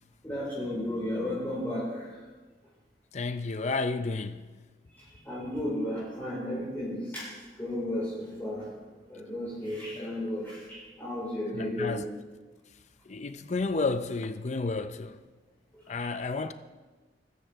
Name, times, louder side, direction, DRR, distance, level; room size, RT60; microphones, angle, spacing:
voice 1, 0.2-2.1 4.9-7.3 7.6-8.7 9.1-12.0, left 1 dB, 10° left, 4.7 m, -33 dB
voice 2, 3.1-4.5 9.9-10.3 11.5-12.1 13.1-15.2 15.9-16.5, left 3 dB, 40° left, 0.5 m, -32 dB
24.0 x 13.5 x 3.5 m
head